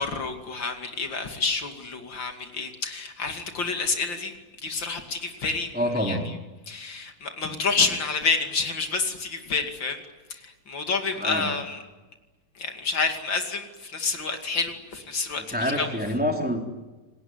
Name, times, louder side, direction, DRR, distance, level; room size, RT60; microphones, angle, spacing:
voice 1, 0.0-4.3 4.6-6.4 6.7-10.0 10.3-10.4 10.7-11.8 12.6-16.1, left 4 dB, 80° left, 5 dB, 3.3 m, -29 dB
voice 2, 5.7-6.3 11.1-11.5 15.4-16.6, equal, 5° right, 1 dB, 3.9 m, -27 dB
28.0 x 20.0 x 9.8 m, 1.2 s
omnidirectional pair, 2.0 m